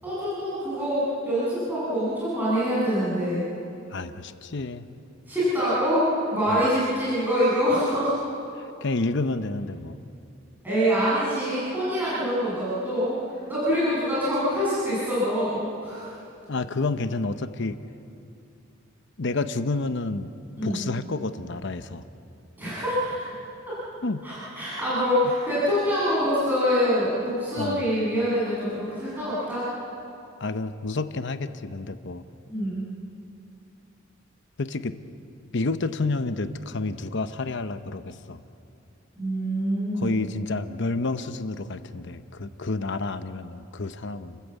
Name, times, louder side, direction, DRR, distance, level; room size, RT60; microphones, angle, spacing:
voice 1, 0.0-3.4 5.3-8.1 10.6-13.2 13.5-16.1 20.6-20.8 22.6-23.2 23.7-23.8 24.2-29.7 32.5-32.8 39.2-40.1, equal, 10° right, -11 dB, 7.6 m, -25 dB
voice 2, 3.9-4.9 6.5-6.7 8.8-10.0 16.5-17.8 19.2-20.3 20.6-22.0 24.0-24.3 27.6-27.8 30.4-32.2 34.6-35.0 35.5-38.4 39.9-44.4, left 3 dB, 60° left, 10 dB, 0.9 m, -29 dB
30.0 x 14.5 x 8.3 m, 2.7 s
head